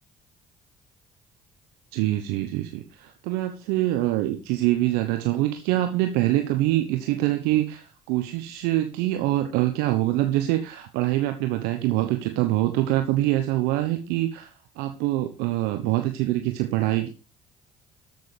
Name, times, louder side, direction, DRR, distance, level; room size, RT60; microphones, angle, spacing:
voice 1, 1.9-17.1, right 15 dB, 75° right, 7 dB, 1.1 m, -25 dB
13.5 x 6.8 x 5.0 m, 0.34 s
hypercardioid pair, 55°, 16 cm